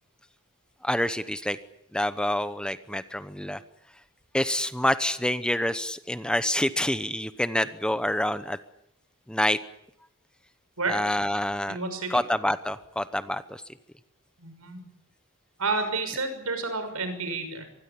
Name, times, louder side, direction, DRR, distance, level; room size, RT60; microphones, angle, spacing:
voice 1, 0.8-1.6 1.9-3.6 4.3-8.6 9.3-9.6 10.9-11.8 12.1-13.6, left 1 dB, 5° left, 12 dB, 0.9 m, -27 dB
voice 2, 11.7-12.2 14.4-14.8 15.6-17.6, right 3 dB, 80° right, 8 dB, 6.1 m, -30 dB
25.5 x 20.5 x 8.6 m, 0.77 s
head